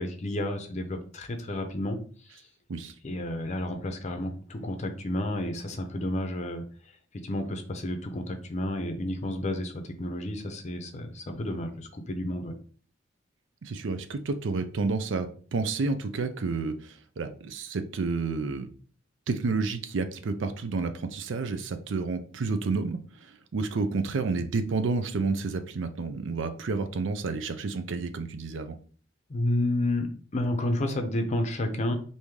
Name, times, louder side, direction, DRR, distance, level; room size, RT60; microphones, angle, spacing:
voice 1, 0.0-2.0 3.0-6.6 7.2-12.5 29.3-32.0, left 1 dB, 40° left, 5 dB, 0.6 m, -31 dB
voice 2, 13.6-18.7 19.3-28.8, right 4 dB, 75° right, 9 dB, 0.5 m, -30 dB
3.5 x 2.7 x 3.1 m, 0.43 s
head